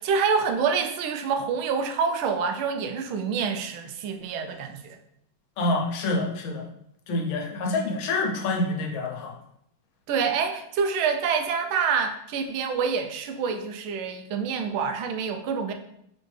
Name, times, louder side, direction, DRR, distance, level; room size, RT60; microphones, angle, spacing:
voice 1, 0.0-5.0 10.1-15.7, right 6 dB, 85° right, 6 dB, 1.4 m, -27 dB
voice 2, 5.6-6.7 7.1-9.3, left 2 dB, 80° left, 1 dB, 1.6 m, -27 dB
4.3 x 3.7 x 3.2 m, 0.74 s
omnidirectional pair, 2.2 m